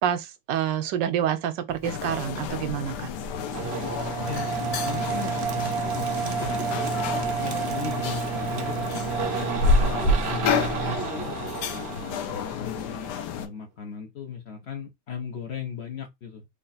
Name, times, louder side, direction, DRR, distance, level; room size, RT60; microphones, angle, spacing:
voice 1, 0.0-3.1, right 10 dB, 80° right, 1.3 m, -27 dB
Writing, 1.7-11.0, right 1 dB, 90° left, 1.6 m, -46 dB
sound 1, 1.8-13.5, left 4 dB, 70° left, 1.2 m, -29 dB
sound 2, 3.5-13.1, right 6 dB, 60° right, 0.6 m, -30 dB
voice 2, 4.2-11.3 12.0-16.5, left 7 dB, 55° left, 0.7 m, -38 dB
3.4 x 2.4 x 4.0 m
omnidirectional pair, 2.0 m